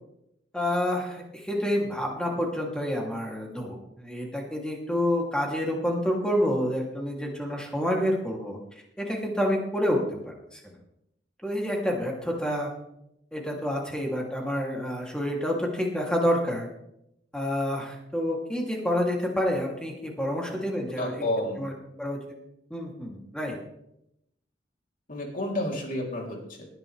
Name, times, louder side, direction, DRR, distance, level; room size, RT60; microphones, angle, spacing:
voice 1, 0.5-8.6 9.0-10.2 10.5-10.6 11.4-12.7 13.3-16.7 17.3-21.2 21.6-21.7 22.0-22.2 22.7-23.6, equal, 5° left, -1 dB, 2.9 m, -28 dB
voice 2, 21.0-21.7 25.1-26.7, left 1 dB, 50° left, 0 dB, 3.4 m, -30 dB
19.5 x 11.0 x 3.4 m, 0.81 s
head